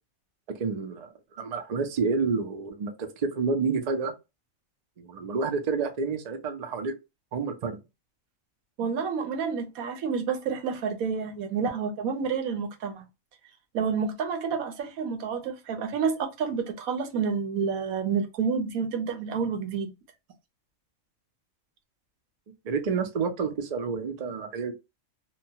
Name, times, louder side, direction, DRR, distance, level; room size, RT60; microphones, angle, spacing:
voice 1, 0.5-4.1 5.0-6.9 7.3-7.8 22.6-24.7, right 5 dB, 65° right, 0.4 m, -29 dB
voice 2, 8.8-13.1 13.7-19.9, right 6 dB, 85° right, 1.2 m, -29 dB
2.9 x 2.2 x 2.7 m
omnidirectional pair, 1.5 m